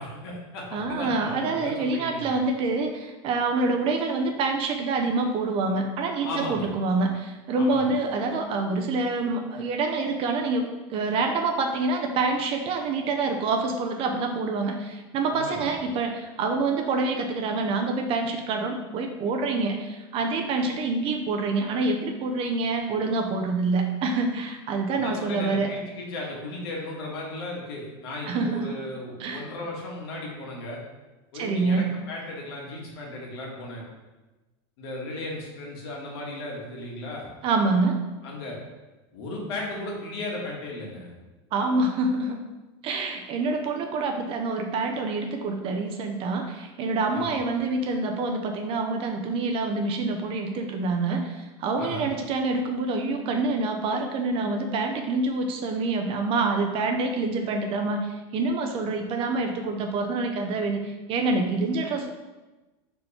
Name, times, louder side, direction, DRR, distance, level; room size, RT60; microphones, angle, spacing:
voice 1, 0.0-2.4 6.2-6.7 7.5-7.9 15.3-15.7 24.9-30.8 31.3-33.8 34.8-37.3 38.2-38.6 39.1-41.1 47.1-47.4 51.7-52.1, left 2 dB, 75° left, -2 dB, 1.9 m, -36 dB
voice 2, 0.7-25.7 28.3-28.8 29.2-29.5 31.3-31.9 37.4-38.0 41.5-42.4 42.8-62.1, right 3 dB, 45° right, 3 dB, 0.7 m, -26 dB
5.1 x 4.4 x 4.3 m, 1.1 s
supercardioid pair, 130°, 14 cm